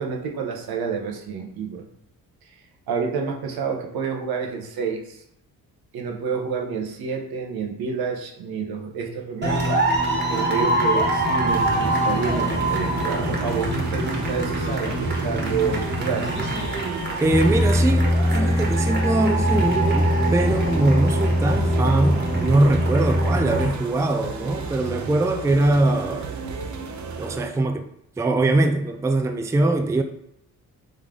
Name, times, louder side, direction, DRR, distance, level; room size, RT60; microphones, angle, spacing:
voice 1, 0.0-1.9 2.9-5.2 5.9-9.6 10.3-16.3, right 6 dB, 80° right, 2 dB, 0.9 m, -29 dB
sound 1, 9.4-23.7, equal, 30° right, 1.3 m, -23 dB
sound 2, 11.5-27.5, right 5 dB, 50° right, 0.7 m, -33 dB
voice 2, 17.2-26.3 27.2-27.9 28.2-30.0, right 2 dB, 10° right, 6 dB, 0.4 m, -22 dB
3.8 x 3.2 x 3.6 m, 0.74 s
cardioid pair, 80°, 36 cm